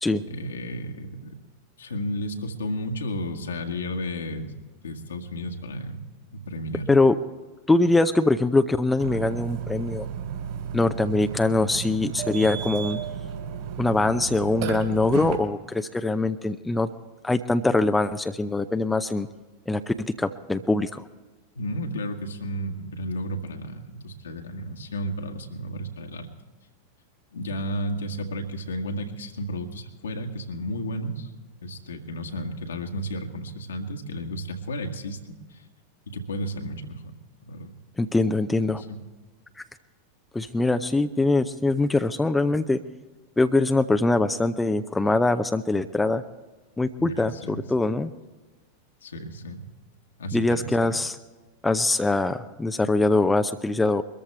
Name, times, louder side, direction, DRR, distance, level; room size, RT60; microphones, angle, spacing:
voice 1, 0.3-1.4 1.8-4.5 4.8-6.0 6.3-6.9 21.6-26.3 27.3-31.3 31.6-35.2 35.5-35.6 36.1-37.1 37.4-37.7 38.7-39.0 47.0-47.6 49.0-49.6 50.2-50.9, equal, 70° left, 3 dB, 1.7 m, -33 dB
voice 2, 7.7-10.1 10.7-13.0 13.8-16.9 17.2-19.3 19.7-21.0 38.0-38.8 40.3-42.8 43.4-46.2 46.8-48.1 50.3-51.2 51.6-54.0, left 2 dB, 10° left, 9 dB, 0.6 m, -23 dB
Burping eructation, 9.0-15.4, right 8 dB, 45° right, 3.4 m, -33 dB
22.5 x 14.0 x 3.3 m, 1.2 s
figure-of-eight pair, 90°, 0 cm